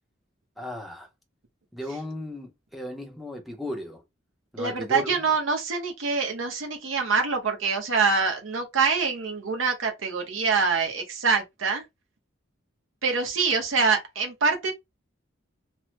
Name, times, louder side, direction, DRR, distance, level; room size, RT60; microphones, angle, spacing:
voice 1, 0.6-1.1 1.7-4.0 4.5-5.2, left 1 dB, ahead, 0.6 m, -35 dB
voice 2, 4.6-11.8 13.0-14.7, right 4 dB, 90° right, 0.8 m, -25 dB
3.1 x 2.0 x 3.1 m
head